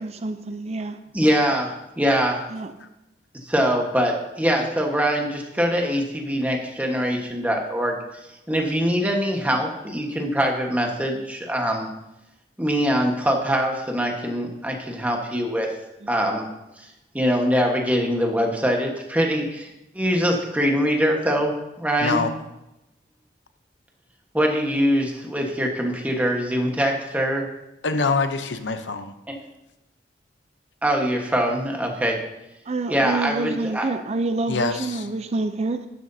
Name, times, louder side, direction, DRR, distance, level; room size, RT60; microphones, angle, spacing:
voice 1, 0.0-1.0 2.5-2.7 16.0-16.1 32.7-35.9, right 3 dB, 35° right, 9 dB, 0.5 m, -27 dB
voice 2, 1.1-2.4 3.4-8.0 8.5-11.9 12.6-15.7 16.1-16.5 17.1-19.7 19.9-21.5 21.8-22.2 24.3-27.5 29.3-29.4 30.8-32.2 32.9-33.9, equal, 10° right, 1 dB, 1.3 m, -23 dB
voice 3, 22.0-22.3 27.8-29.1 34.5-35.1, left 4 dB, 75° left, 9 dB, 0.7 m, -25 dB
12.5 x 11.0 x 2.8 m, 0.93 s
head